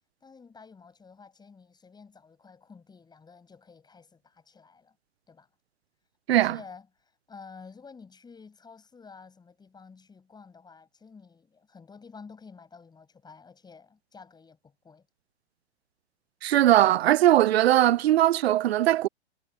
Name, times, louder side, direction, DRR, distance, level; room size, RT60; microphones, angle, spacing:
voice 1, 0.2-5.0 5.3-5.5 6.3-15.1, left 5 dB, 10° left, 7.7 m, -50 dB
voice 2, 16.4-19.1, right 13 dB, 65° right, 0.5 m, -20 dB
hypercardioid pair, 115°, 34 cm